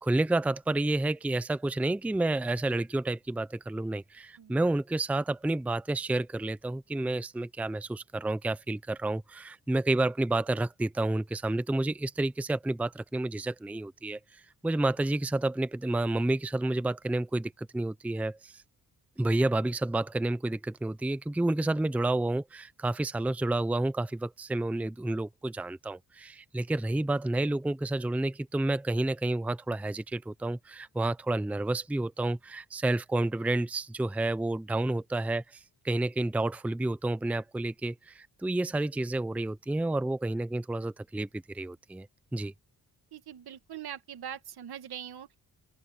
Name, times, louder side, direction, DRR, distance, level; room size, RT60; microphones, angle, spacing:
voice 1, 0.0-18.6 19.2-42.1 42.3-42.5, right 2 dB, 5° right, 0.5 m, -30 dB
voice 2, 43.1-45.3, right 9 dB, 80° right, 2.1 m, -42 dB
open air
cardioid pair, 105°, 38 cm